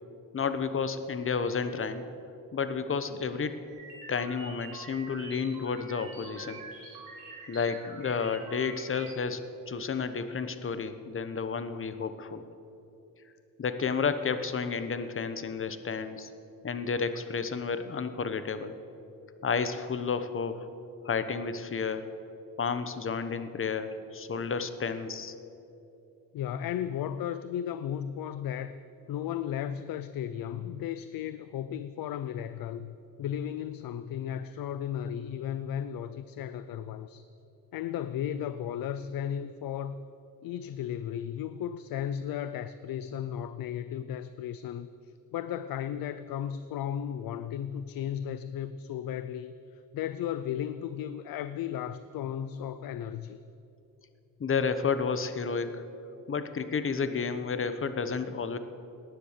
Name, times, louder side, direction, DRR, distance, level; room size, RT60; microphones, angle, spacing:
voice 1, 0.3-2.1 2.5-3.6 4.1-6.6 7.5-9.4 9.7-12.4 13.6-16.3 16.6-18.8 19.4-20.7 21.0-22.1 22.6-25.3 54.4-55.8 56.3-58.6, left 5 dB, 40° left, 11 dB, 1.0 m, -31 dB
sound 1, 3.7-9.2, right 4 dB, 85° right, 3.9 m, -46 dB
voice 2, 26.3-28.8 29.1-37.3 37.7-40.0 40.4-53.4, left 9 dB, 80° left, 13 dB, 0.6 m, -35 dB
18.5 x 10.0 x 6.6 m, 2.9 s
cardioid pair, 105°, 34 cm